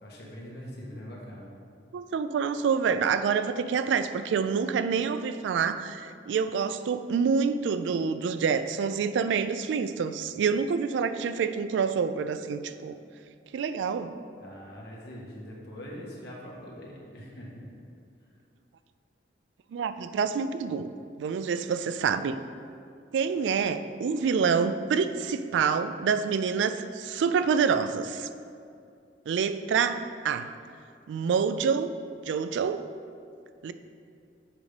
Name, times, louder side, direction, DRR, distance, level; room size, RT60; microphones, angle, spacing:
voice 1, 0.0-1.5 14.4-17.7, equal, 65° left, -4 dB, 1.3 m, -43 dB
voice 2, 1.9-13.0 13.5-14.1 19.7-20.9 21.2-22.4 23.1-28.3 29.3-30.5 31.1-31.9 32.3-32.8 33.6-33.7, right 6 dB, 85° right, 11 dB, 0.3 m, -27 dB
7.3 x 3.3 x 5.2 m, 2.4 s
head